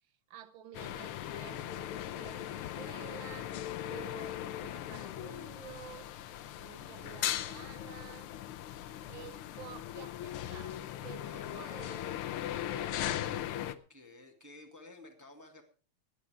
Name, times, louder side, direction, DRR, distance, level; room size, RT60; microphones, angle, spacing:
voice 1, 0.3-3.5 3.8-6.1 6.5-8.3 9.1-12.1 12.7-13.5, right 9 dB, 65° right, 1.3 m, -51 dB
sound 1, 0.7-13.8, left 12 dB, 85° left, 1.2 m, -39 dB
voice 2, 11.1-11.7 13.9-15.6, left 2 dB, 10° right, 1.3 m, -53 dB
16.5 x 10.0 x 5.0 m
omnidirectional pair, 3.3 m